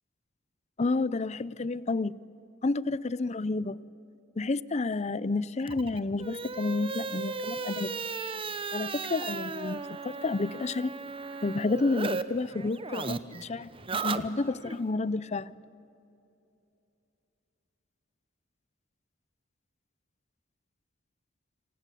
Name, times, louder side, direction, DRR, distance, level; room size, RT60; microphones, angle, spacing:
voice 1, 0.8-2.2 2.6-3.8 4.4-7.9 8.7-10.9 11.4-15.5, left 3 dB, 35° left, 20 dB, 0.5 m, -30 dB
sound 1, 5.6-12.2 12.5-14.8, right 4 dB, 30° right, 0.9 m, -36 dB
27.0 x 25.5 x 8.4 m, 2.8 s
head